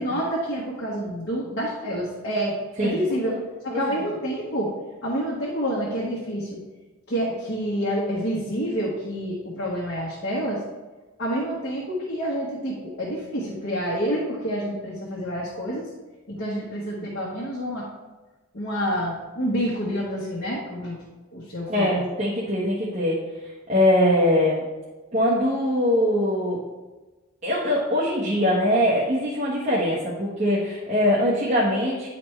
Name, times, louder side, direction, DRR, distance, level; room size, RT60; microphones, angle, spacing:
voice 1, 0.0-3.4 3.6-4.7 5.0-6.6 7.1-10.6 11.2-15.9 16.3-17.8 18.5-21.0 21.3-22.0, equal, 55° left, -5 dB, 1.4 m, -28 dB
voice 2, 21.7-24.6 25.1-26.6 27.4-32.1, left 1 dB, 35° right, -8 dB, 1.3 m, -22 dB
10.0 x 4.3 x 3.3 m, 1.2 s
head